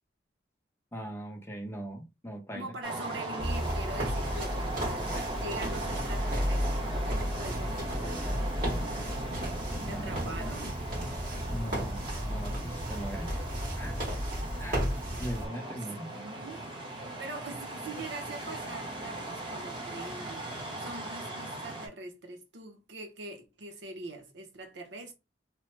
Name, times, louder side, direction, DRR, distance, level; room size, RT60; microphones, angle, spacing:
voice 1, 0.9-2.7 9.8-10.1 11.5-12.0 12.3-13.3 13.7-14.0 14.6-16.1, right 1 dB, 15° left, 0.6 m, -40 dB
voice 2, 2.5-8.2 9.6-10.8 16.1-16.6 17.2-25.1, right 2 dB, 90° right, 0.7 m, -43 dB
sound 1, 2.8-21.9, right 2 dB, 30° right, 0.9 m, -38 dB
sound 2, 3.4-15.5, equal, 55° right, 1.7 m, -33 dB
3.0 x 2.0 x 3.1 m
head